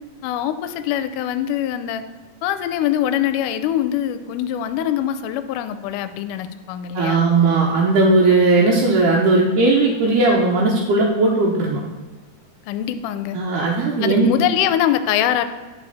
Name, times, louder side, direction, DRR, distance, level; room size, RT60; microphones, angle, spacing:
voice 1, 0.2-2.0 2.4-7.2 12.7-13.4 14.0-15.4, left 11 dB, 85° left, 10 dB, 2.1 m, -23 dB
voice 2, 6.9-11.8 13.3-14.3, right 3 dB, 85° right, -4 dB, 2.4 m, -17 dB
10.5 x 4.8 x 4.1 m, 1.3 s
omnidirectional pair, 3.6 m